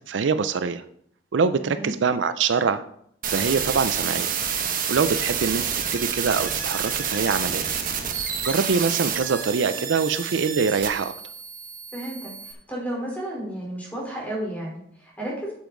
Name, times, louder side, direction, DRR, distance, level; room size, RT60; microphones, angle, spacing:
voice 1, 0.1-0.8 1.3-2.8 3.3-4.3 4.9-5.6 5.9-7.7 8.4-11.1, right 5 dB, 75° right, 11 dB, 0.5 m, -24 dB
sound 1, 3.2-12.5, right 7 dB, 50° right, 1.0 m, -28 dB
voice 2, 11.9-15.5, right 1 dB, 10° left, -3 dB, 3.7 m, -32 dB
9.4 x 7.1 x 3.9 m, 0.68 s
head